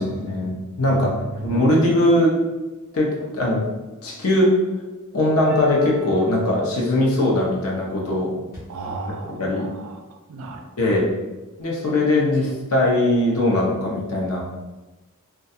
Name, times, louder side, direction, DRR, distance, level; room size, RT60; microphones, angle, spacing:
voice 1, 0.0-2.3 2.9-3.7 4.0-4.5 5.1-8.3 9.4-9.7 10.8-11.1 11.6-14.4, left 1 dB, 65° left, -2 dB, 0.7 m, -20 dB
voice 2, 0.9-1.6 8.7-10.0 10.3-11.0, right 3 dB, 65° right, 3 dB, 0.4 m, -34 dB
sound 1, 5.5-8.6, left 10 dB, 45° left, 0.9 m, -32 dB
2.4 x 2.2 x 2.7 m, 1.1 s
head